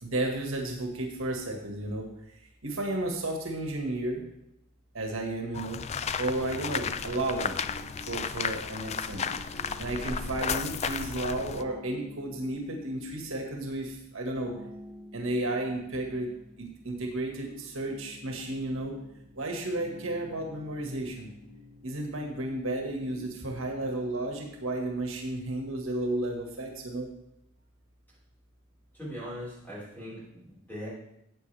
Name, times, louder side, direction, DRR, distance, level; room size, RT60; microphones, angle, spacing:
voice 1, 0.0-2.4 2.6-4.2 4.9-5.8 6.2-7.6 8.1-9.2 9.8-14.5 15.1-16.3 16.6-18.9 19.4-21.3 21.8-27.1, right 1 dB, 80° right, 1 dB, 1.9 m, -33 dB
sound 1, 5.5-11.6, left 6 dB, 30° left, 0.4 m, -33 dB
sound 2, 6.3-24.5, equal, 85° left, 2.9 m, -51 dB
voice 2, 28.9-30.9, equal, 10° left, -8 dB, 4.8 m, -40 dB
14.5 x 8.3 x 3.5 m, 0.81 s
head